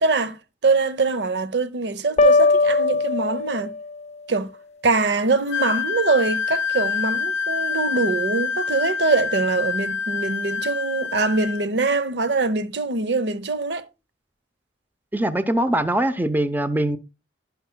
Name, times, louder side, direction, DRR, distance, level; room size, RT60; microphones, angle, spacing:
voice 1, 0.0-3.7 4.3-4.5 4.8-13.8, right 3 dB, 65° right, 0.8 m, -23 dB
sound 1, 2.2-4.1, left 3 dB, 35° left, 0.5 m, -19 dB
Wind instrument woodwind instrument, 5.5-11.6, left 5 dB, 80° left, 0.6 m, -26 dB
voice 2, 15.1-17.0, right 1 dB, 10° right, 0.6 m, -22 dB
11.5 x 10.5 x 2.2 m
head